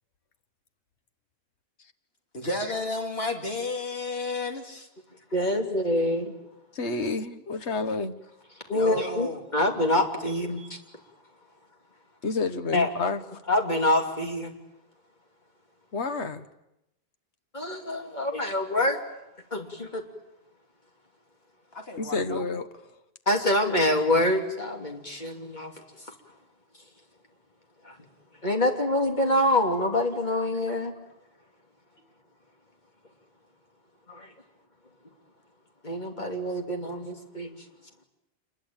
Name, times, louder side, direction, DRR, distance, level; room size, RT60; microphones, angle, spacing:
voice 1, 2.3-4.9 8.7-9.4 10.3-10.7 21.7-22.5 23.4-23.8, left 2 dB, 65° left, 3 dB, 3.2 m, -33 dB
voice 2, 5.3-6.3 8.7-10.8 12.7-12.9 13.5-14.5 17.5-19.0 19.5-20.0 23.3-25.7 27.8-28.0 28.4-30.9 34.1-34.3 35.8-37.5, left 1 dB, 40° left, 2 dB, 3.2 m, -26 dB
voice 3, 6.7-8.1 12.2-13.2 15.9-16.4 22.0-22.7, left 3 dB, 85° left, 9 dB, 1.6 m, -29 dB
27.5 x 22.0 x 8.9 m, 0.89 s
omnidirectional pair, 1.1 m